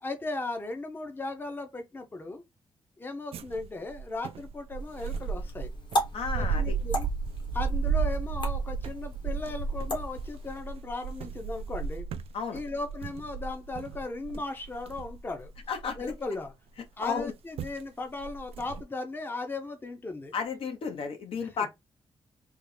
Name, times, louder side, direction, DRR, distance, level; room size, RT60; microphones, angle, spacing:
voice 1, 0.0-2.4 3.0-5.7 6.3-7.1 7.5-12.1 12.5-15.5 16.0-16.5 17.0-20.3 21.4-21.7, left 2 dB, 20° left, 0.6 m, -37 dB
sound 1, 3.3-16.5 17.2-17.3 17.6-17.8 18.2-18.8, right 5 dB, 85° right, 0.4 m, -34 dB
sound 2, 4.8-10.6, equal, 55° left, 1.3 m, -37 dB
voice 2, 6.1-6.8 12.3-12.6 15.7-16.0 17.0-17.3 20.3-21.7, left 5 dB, 75° left, 1.0 m, -32 dB
3.5 x 2.3 x 3.2 m
wide cardioid pair, 125°, 10 cm